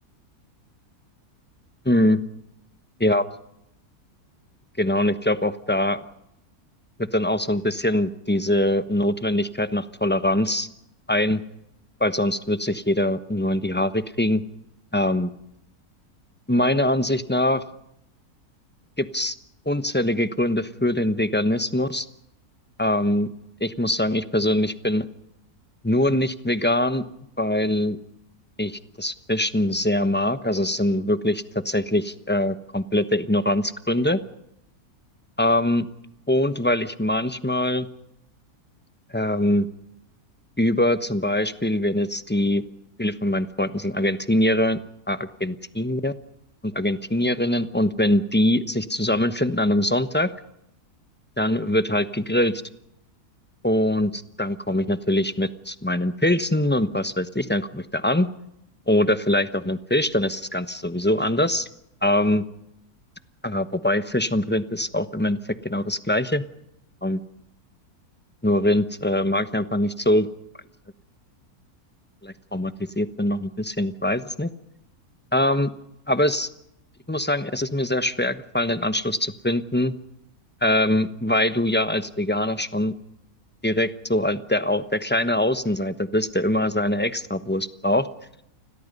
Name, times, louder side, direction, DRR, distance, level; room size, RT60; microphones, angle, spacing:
voice 1, 1.8-2.2 3.0-3.2 4.8-6.0 7.1-10.7 11.1-11.4 12.0-14.4 14.9-15.3 16.5-17.6 19.0-19.3 19.7-22.1 22.8-23.3 23.6-25.0 25.8-27.0 27.4-28.0 28.6-34.2 35.4-35.9 36.3-37.9 39.1-39.7 40.6-42.6 43.0-44.8 45.1-46.1 46.6-50.3 51.4-52.6 53.6-58.3 58.9-61.7 62.0-62.4 63.4-66.4 67.0-67.2 68.4-70.3 72.2-74.5 75.3-75.7 76.1-76.5 77.1-79.9 80.6-82.9 83.6-88.1, left 1 dB, 10° left, 11 dB, 0.9 m, -23 dB
29.0 x 21.5 x 5.4 m, 0.78 s
omnidirectional pair, 1.6 m